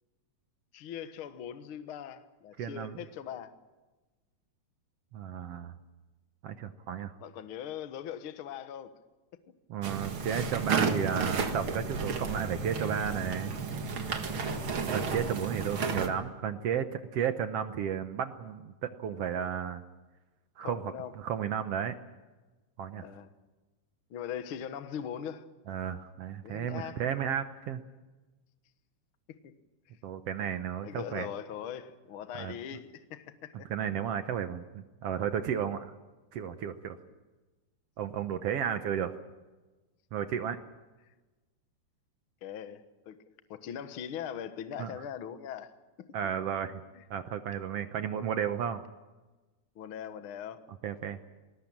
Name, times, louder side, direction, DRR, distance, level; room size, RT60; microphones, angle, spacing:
voice 1, 0.7-3.5 7.2-8.9 14.2-14.6 20.6-21.1 23.0-23.3 24.1-25.4 26.4-27.0 29.3-29.5 30.8-33.7 42.4-43.2 43.5-45.7 46.0-46.1 46.9-47.0 49.7-50.7, left 9 dB, 55° left, 1.6 m, -41 dB
voice 2, 2.6-3.0 5.1-5.7 6.4-7.1 9.7-13.5 14.9-19.8 20.6-21.9 22.8-23.0 25.7-27.8 30.0-31.3 32.4-32.5 33.7-35.9 36.3-37.0 38.0-39.1 40.1-40.6 44.8-44.9 46.1-46.8 47.1-48.8 50.8-51.2, right 8 dB, 70° right, 1.5 m, -33 dB
sound 1, 9.8-16.1, right 5 dB, 45° right, 2.2 m, -32 dB
21.0 x 19.5 x 8.7 m
omnidirectional pair, 3.8 m